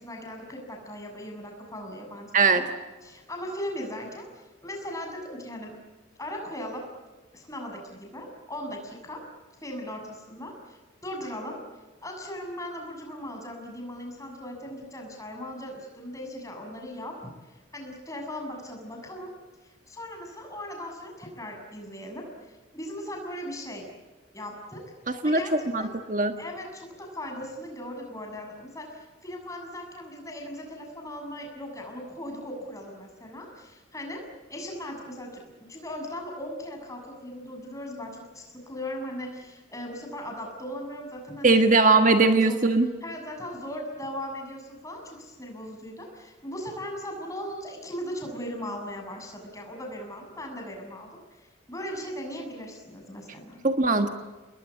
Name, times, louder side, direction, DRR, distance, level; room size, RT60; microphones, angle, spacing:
voice 1, 0.0-2.7 3.0-5.7 6.2-6.9 7.3-9.2 9.6-11.6 12.0-17.3 17.7-19.3 19.6-23.8 24.3-24.8 25.2-26.0 26.4-34.2 34.5-42.7 43.0-53.6, left 1 dB, 15° left, 2 dB, 7.2 m, -38 dB
voice 2, 25.1-26.3 41.4-42.9 53.6-54.1, right 3 dB, 40° right, 7 dB, 1.5 m, -20 dB
29.0 x 21.0 x 8.5 m, 1.3 s
head